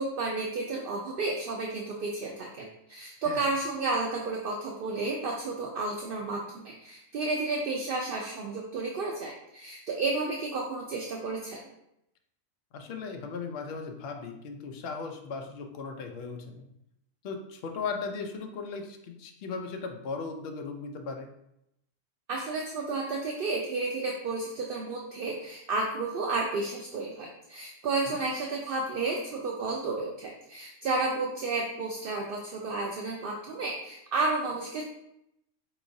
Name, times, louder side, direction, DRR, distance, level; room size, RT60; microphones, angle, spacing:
voice 1, 0.0-11.6 22.3-34.8, right 3 dB, 65° right, 0 dB, 0.5 m, -32 dB
voice 2, 12.7-16.7 17.2-21.3 28.1-28.2, left 4 dB, 60° left, 4 dB, 0.7 m, -37 dB
4.7 x 2.9 x 2.6 m, 0.81 s
omnidirectional pair, 1.4 m